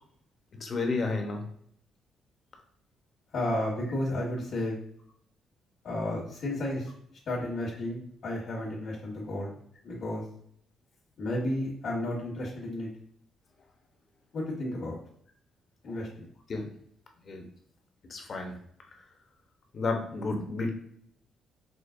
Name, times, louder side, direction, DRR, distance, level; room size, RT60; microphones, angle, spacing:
voice 1, 0.6-1.4 15.9-16.0 16.5-16.7 17.3-17.4 18.1-18.5 19.7-20.7, left 3 dB, 45° left, 3 dB, 0.8 m, -31 dB
voice 2, 3.3-4.8 5.8-6.9 7.3-9.5 9.8-10.2 11.2-12.9 14.3-15.0 15.8-16.2, left 1 dB, 60° left, -6 dB, 1.3 m, -32 dB
5.0 x 2.0 x 2.5 m, 0.66 s
cardioid pair, 90°, 0 cm